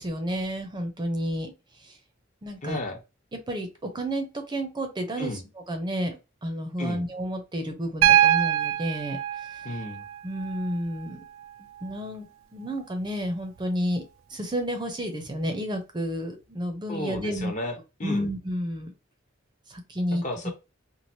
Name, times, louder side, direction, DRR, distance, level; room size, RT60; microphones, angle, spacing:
voice 1, 0.0-1.5 1.8-2.0 2.4-2.8 3.5-5.3 5.7-9.2 9.5-9.6 10.2-11.2 11.6-12.3 12.5-14.0 14.3-17.5 18.0-18.9 19.7-20.2, equal, 25° right, 5 dB, 0.6 m, -31 dB
voice 2, 2.6-3.0 5.2-5.4 6.8-7.0 9.6-10.0 16.9-18.2 20.1-20.5, left 1 dB, 40° left, 2 dB, 0.9 m, -33 dB
Piano, 8.0-12.0 13.6-13.7, right 12 dB, 70° right, 0.3 m, -25 dB
3.1 x 2.4 x 2.7 m, 0.28 s
head